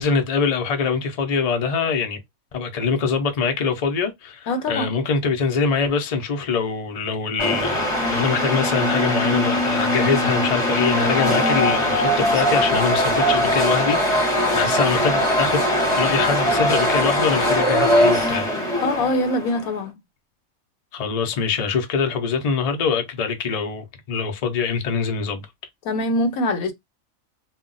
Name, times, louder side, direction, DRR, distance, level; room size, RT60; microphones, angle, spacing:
voice 1, 0.0-2.2 2.5-15.6 15.9-18.5 20.9-25.5, left 5 dB, 60° left, 0.4 m, -24 dB
voice 2, 4.5-5.0 18.8-20.0 25.8-26.7, left 1 dB, 85° left, 1.1 m, -23 dB
sound 1, 7.4-19.7, equal, 25° left, 0.7 m, -21 dB
2.2 x 2.1 x 3.8 m
omnidirectional pair, 1.4 m